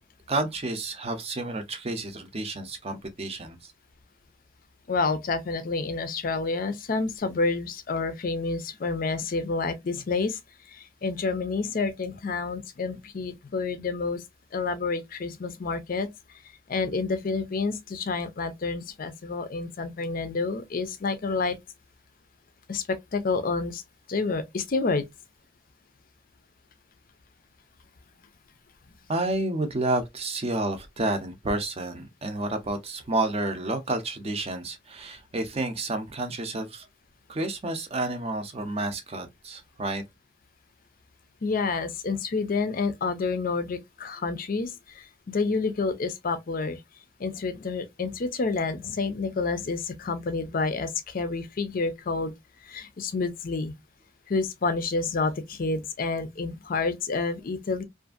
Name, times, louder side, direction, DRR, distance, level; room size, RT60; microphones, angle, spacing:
voice 1, 0.3-3.7 29.1-36.9 37.3-40.0, right 2 dB, 30° right, 0.5 m, -30 dB
voice 2, 4.9-10.4 10.7-14.2 14.5-16.1 16.7-21.6 22.7-23.8 24.1-25.1 41.4-46.8 47.2-52.3 52.6-53.7 54.3-57.8, left 4 dB, 45° left, 0.5 m, -29 dB
2.6 x 2.4 x 2.4 m
head